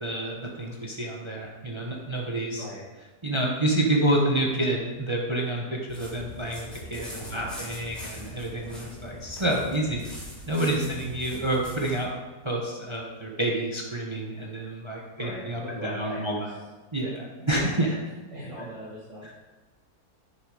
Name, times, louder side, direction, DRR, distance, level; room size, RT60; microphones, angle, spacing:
voice 1, 0.0-2.6 3.2-10.0 10.5-12.1 12.4-16.5 16.9-18.0, right 1 dB, 20° right, -1 dB, 1.0 m, -28 dB
voice 2, 2.5-2.8 7.2-7.6 10.7-11.1 15.2-16.6 17.4-17.8 18.3-19.3, equal, 50° right, -9 dB, 2.5 m, -40 dB
sound 1, 5.9-12.0, equal, ahead, 3.4 m, -42 dB
9.8 x 6.7 x 4.9 m, 1.2 s
omnidirectional pair, 1.7 m